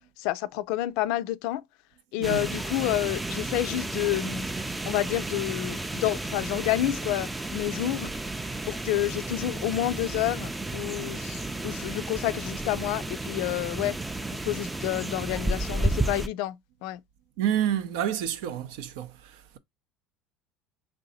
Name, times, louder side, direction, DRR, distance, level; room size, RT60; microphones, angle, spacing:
voice 1, 0.2-1.6 2.1-4.5 4.9-8.1 8.7-14.0 14.4-16.6 16.8-17.0, left 14 dB, 70° left, 0.3 m, -29 dB
sound 1, 2.2-16.3, right 2 dB, 10° right, 0.4 m, -32 dB
voice 2, 17.4-19.6, right 10 dB, 75° right, 0.5 m, -29 dB
3.3 x 2.7 x 4.0 m
supercardioid pair, 100°, 0 cm